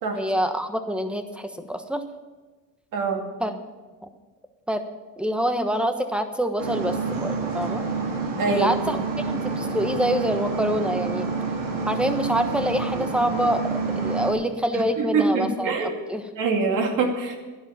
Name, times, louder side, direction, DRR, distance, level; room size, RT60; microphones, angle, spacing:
voice 1, 0.1-2.0 3.4-3.5 4.0-4.1 4.7-4.8 5.2-7.8 8.5-9.0 9.3-11.3 11.9-16.3, equal, 5° right, 7 dB, 1.2 m, -26 dB
voice 2, 2.9-3.3 8.4-8.7 14.7-16.0 16.4-17.4, right 4 dB, 65° right, 2 dB, 2.5 m, -24 dB
sound 1, 6.6-14.3, right 4 dB, 85° right, 3.3 m, -28 dB
11.0 x 11.0 x 7.0 m, 1.3 s
cardioid pair, 110°, 34 cm